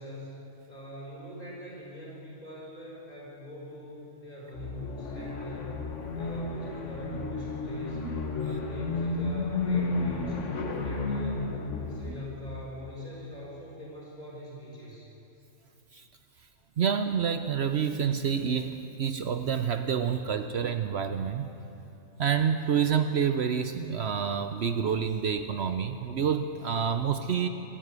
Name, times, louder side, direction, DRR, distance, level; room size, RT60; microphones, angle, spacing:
voice 1, 0.0-5.7 6.1-10.4 10.8-15.1, equal, 35° left, -6 dB, 6.3 m, -43 dB
sound 1, 4.5-12.2, left 3 dB, 75° left, 1.9 m, -32 dB
voice 2, 16.8-21.5 22.2-27.5, right 7 dB, 65° right, 9 dB, 0.9 m, -28 dB
23.0 x 14.0 x 8.2 m, 2.8 s
omnidirectional pair, 1.3 m